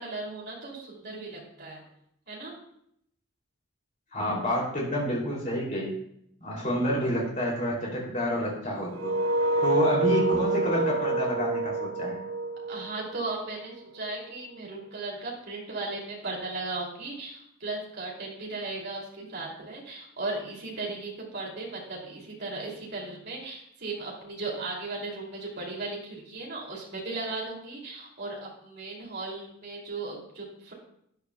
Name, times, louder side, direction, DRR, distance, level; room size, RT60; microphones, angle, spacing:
voice 1, 0.0-1.8 2.3-2.5 9.8-10.0 12.7-30.7, right 3 dB, 50° right, -2 dB, 2.7 m, -36 dB
voice 2, 4.1-5.9 6.4-9.1 9.6-12.2, equal, 35° left, -3 dB, 2.8 m, -28 dB
sound 1, 8.9-13.8, right 2 dB, 80° right, 0.9 m, -27 dB
12.5 x 9.6 x 2.3 m, 0.73 s
head